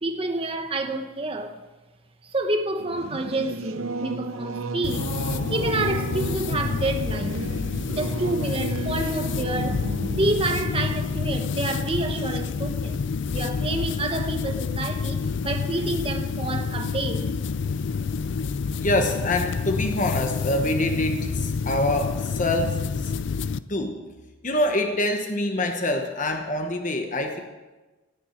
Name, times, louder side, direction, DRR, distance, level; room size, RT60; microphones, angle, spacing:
voice 1, 0.0-1.6 2.2-5.1 5.5-7.5 7.9-17.3, right 2 dB, 25° right, 1.0 m, -29 dB
Singing / Musical instrument, 2.8-12.9, right 2 dB, 70° right, 0.8 m, -34 dB
sound 1, 4.8-23.6, left 5 dB, 55° left, 0.4 m, -28 dB
voice 2, 18.8-23.1 23.7-24.1 24.4-27.4, left 1 dB, 35° left, 1.1 m, -25 dB
17.0 x 7.3 x 7.1 m
head